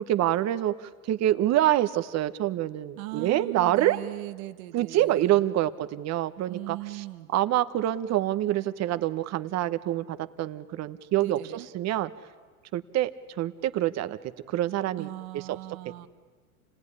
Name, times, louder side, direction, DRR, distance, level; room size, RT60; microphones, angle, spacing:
voice 1, 0.0-4.0 4.7-7.0 7.3-11.4 11.7-12.1 12.7-13.1 13.4-14.2 14.5-15.6, right 13 dB, 35° right, 13 dB, 1.1 m, -26 dB
voice 2, 3.0-5.4 6.5-7.3 11.2-11.7 15.0-16.1, right 18 dB, 65° right, 9 dB, 1.5 m, -39 dB
29.0 x 17.5 x 9.9 m, 1.5 s
hypercardioid pair, 115°, 44 cm